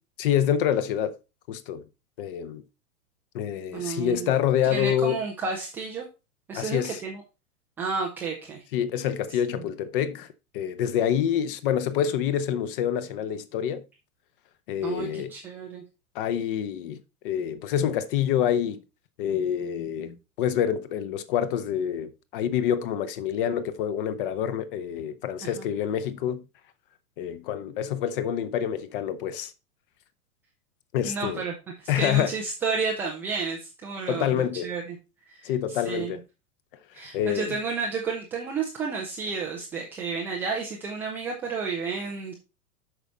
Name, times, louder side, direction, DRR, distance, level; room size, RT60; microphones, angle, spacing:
voice 1, 0.2-1.2 1.5-1.8 2.2-2.6 3.3-5.2 6.5-7.0 8.7-10.3 10.5-13.8 14.7-15.3 16.1-17.0 17.2-18.8 19.2-26.4 27.2-29.5 30.9-31.4 31.9-32.3 34.1-34.7 35.4-36.2 37.1-37.6, left 9 dB, 40° left, 0.9 m, -27 dB
voice 2, 3.7-4.3 4.6-6.1 6.5-7.2 7.8-8.6 9.5-9.6 14.8-15.8 25.4-25.7 31.0-35.0 35.3-36.2 36.9-42.3, right 5 dB, 5° right, 0.3 m, -31 dB
8.1 x 5.9 x 4.2 m
figure-of-eight pair, 100°, 44 cm